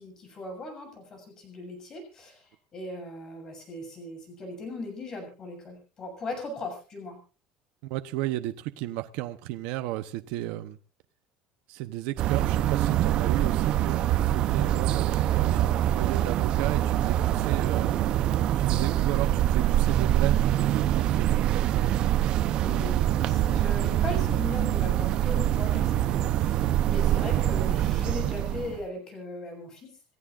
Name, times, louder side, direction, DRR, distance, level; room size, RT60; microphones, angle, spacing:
voice 1, 0.0-7.2 22.6-30.2, left 2 dB, 25° left, 4 dB, 7.3 m, -39 dB
voice 2, 7.8-10.8 11.7-17.9 18.6-21.9, right 15 dB, 70° right, 9 dB, 0.9 m, -34 dB
sound 1, 12.2-28.8, right 12 dB, 40° right, 0.8 m, -24 dB
28.5 x 14.0 x 2.6 m, 0.35 s
cardioid pair, 170°, 2 cm